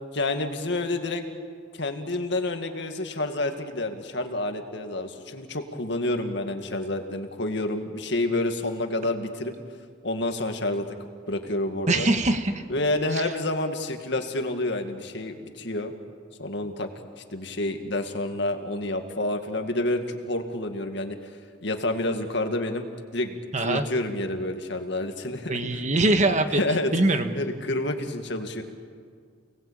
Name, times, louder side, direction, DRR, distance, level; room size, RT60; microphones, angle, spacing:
voice 1, 0.1-1.2 1.7-9.5 10.0-10.9 11.3-12.1 12.7-15.9 16.4-16.9 17.3-21.2 21.6-22.9 23.1-23.4 23.6-25.8 26.6-26.9 27.3-28.6, left 2 dB, 60° left, 6 dB, 2.2 m, -28 dB
voice 2, 11.9-12.6 13.1-13.2 23.5-23.8 25.5-26.6 26.9-27.3, right 2 dB, 40° right, 8 dB, 1.5 m, -23 dB
29.5 x 20.0 x 8.8 m, 2.1 s
head